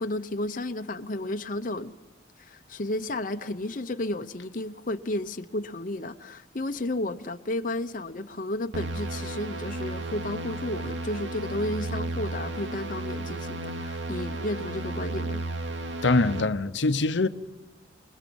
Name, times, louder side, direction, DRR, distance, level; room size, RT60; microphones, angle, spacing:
voice 1, 0.0-2.0 2.4-15.4, left 1 dB, 45° left, 0.9 m, -32 dB
sound 1, 8.7-16.4, right 2 dB, 80° right, 2.5 m, -33 dB
voice 2, 16.0-17.3, left 3 dB, 75° left, 0.8 m, -23 dB
27.5 x 22.0 x 7.1 m
head